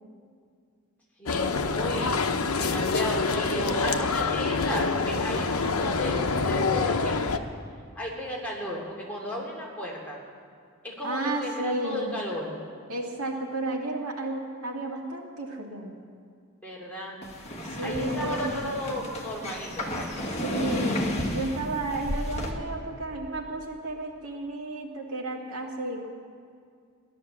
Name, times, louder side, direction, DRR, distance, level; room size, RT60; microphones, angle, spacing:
voice 1, 1.2-2.2 2.6-7.2 8.0-10.2 10.8-12.5 16.6-17.2 17.8-20.1, equal, 5° left, -4 dB, 2.7 m, -34 dB
sound 1, 1.3-7.4, left 4 dB, 90° left, 0.8 m, -26 dB
voice 2, 11.0-12.1 12.9-16.0 17.6-18.5 20.4-26.1, right 2 dB, 90° right, 0 dB, 2.2 m, -32 dB
sound 2, 17.2-22.5, left 1 dB, 30° left, 1.8 m, -32 dB
16.5 x 11.5 x 7.2 m, 2.2 s
head